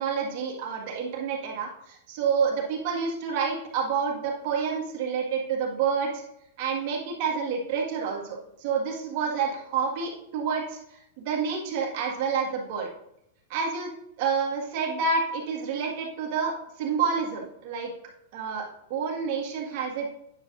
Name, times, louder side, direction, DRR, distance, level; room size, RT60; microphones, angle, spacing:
voice 1, 0.0-6.2 6.6-12.9 13.5-13.9 14.2-17.9 18.3-18.6 18.9-20.1, right 5 dB, 50° right, -1 dB, 1.8 m, -28 dB
9.4 x 6.7 x 2.6 m, 0.80 s
supercardioid pair, 145°, 0 cm